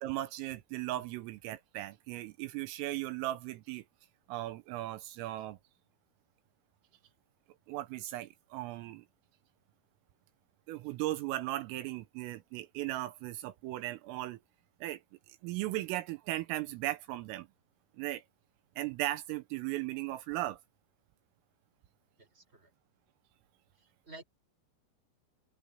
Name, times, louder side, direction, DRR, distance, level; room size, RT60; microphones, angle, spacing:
voice 1, 0.0-3.8 4.3-5.6 7.7-9.1 10.7-14.4 14.8-15.0 15.3-17.5 18.0-18.2 18.8-20.6, right 16 dB, 85° right, 3.5 m, -37 dB
voice 2, 22.2-22.7 23.7-24.2, right 2 dB, 10° right, 5.8 m, -53 dB
open air
omnidirectional pair, 6.0 m